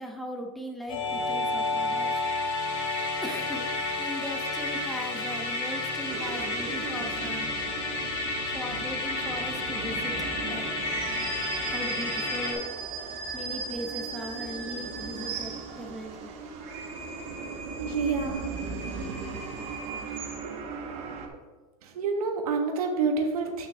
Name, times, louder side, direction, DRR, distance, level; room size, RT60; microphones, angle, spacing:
voice 1, 0.0-2.1 3.2-3.6 4.0-7.5 8.5-10.1 10.4-10.7 11.6-12.6 13.3-16.3, equal, ahead, 2 dB, 0.9 m, -38 dB
Musical instrument, 0.9-12.5, left 2 dB, 60° left, 2.7 m, -31 dB
sound 1, 6.1-21.3, right 4 dB, 35° right, 1.1 m, -39 dB
sound 2, 10.7-16.0 16.5-20.7, right 4 dB, 50° right, 1.7 m, -39 dB
voice 2, 17.8-18.8 20.4-20.5 21.8-23.7, right 4 dB, 90° right, 4 dB, 1.4 m, -28 dB
8.6 x 6.1 x 3.5 m, 1.3 s
supercardioid pair, 140°, 18 cm